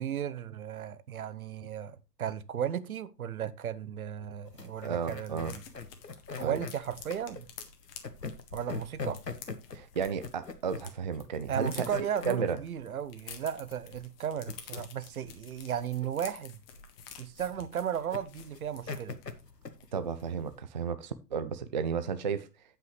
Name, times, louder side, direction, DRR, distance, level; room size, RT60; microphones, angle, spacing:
voice 1, 0.0-5.6 6.4-7.5 8.5-9.2 11.5-16.6 17.2-19.2, right 9 dB, 60° right, 0.9 m, -35 dB
sound 1, 4.2-4.3 4.6-4.7 4.9-10.9 11.2-19.4 19.8-19.9 20.2-20.5, left 9 dB, 35° left, 1.7 m, -50 dB
sound 2, 4.4-20.6, left 4 dB, 85° left, 1.1 m, -42 dB
voice 2, 4.8-5.5 6.4-6.6 9.7-11.9 12.3-12.6 19.9-22.5, right 6 dB, 30° right, 0.4 m, -33 dB
16.0 x 5.7 x 3.2 m
figure-of-eight pair, 110°, 47 cm